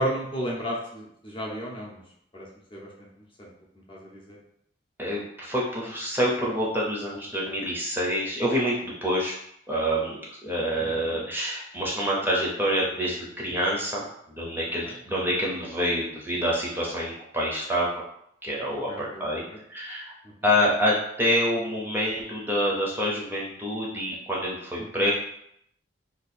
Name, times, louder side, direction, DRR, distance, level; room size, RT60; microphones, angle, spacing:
voice 1, 0.0-2.0 2.3-2.4 2.7-2.9 3.4-3.5 3.9-4.4 10.8-11.2 18.9-19.4 25.0-25.1, equal, 25° left, -3 dB, 0.7 m, -33 dB
voice 2, 5.0-9.3 9.7-17.9 18.4-19.4 19.7-20.1 20.4-25.1, equal, 10° right, -5 dB, 0.6 m, -27 dB
2.8 x 2.4 x 4.1 m, 0.72 s
head